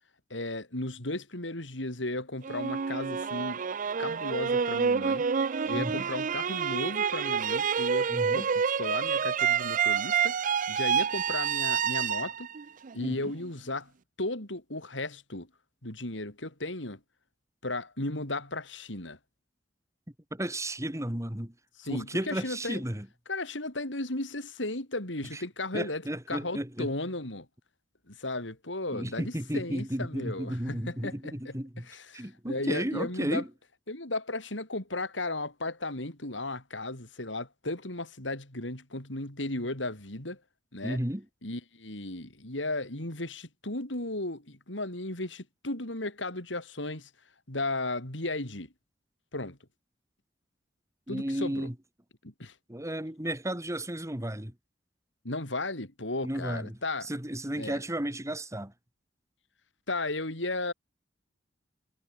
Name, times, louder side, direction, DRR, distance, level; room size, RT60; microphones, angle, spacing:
voice 1, 0.3-3.6 4.0-5.3 5.7-10.4 10.7-12.5 12.9-13.9 14.2-15.5 15.8-17.0 17.6-19.2 21.8-22.8 23.3-26.0 26.3-27.5 28.1-31.6 31.9-33.4 33.9-40.4 40.7-41.0 41.4-47.1 47.5-48.7 49.3-49.6 51.1-51.7 52.2-52.5 55.2-57.1 57.5-57.8 59.9-60.7, left 2 dB, 85° left, 5.4 m, -35 dB
sound 1, 2.4-13.5, right 6 dB, 45° right, 0.5 m, -28 dB
voice 2, 5.7-6.1 8.1-8.5 13.0-13.3 20.3-21.5 21.9-23.1 25.3-25.4 25.7-26.9 28.9-31.9 32.1-33.5 40.8-41.2 51.1-51.7 52.7-54.5 56.2-58.7, right 1 dB, 15° right, 2.3 m, -33 dB
head